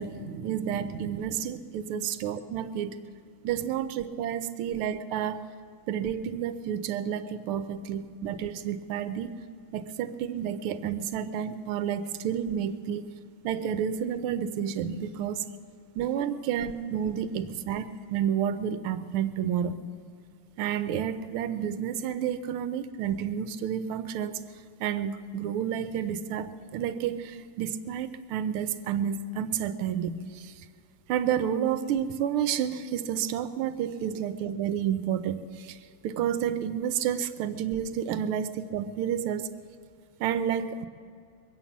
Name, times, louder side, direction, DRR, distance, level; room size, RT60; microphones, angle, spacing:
voice 1, 0.0-3.0 3.4-5.5 5.9-9.3 9.7-13.1 13.4-15.5 15.9-19.8 20.6-24.4 24.8-30.6 31.1-35.8 36.0-39.5 40.2-40.9, right 9 dB, 80° right, 11 dB, 1.6 m, -30 dB
22.5 x 8.7 x 7.2 m, 2.3 s
omnidirectional pair, 2.4 m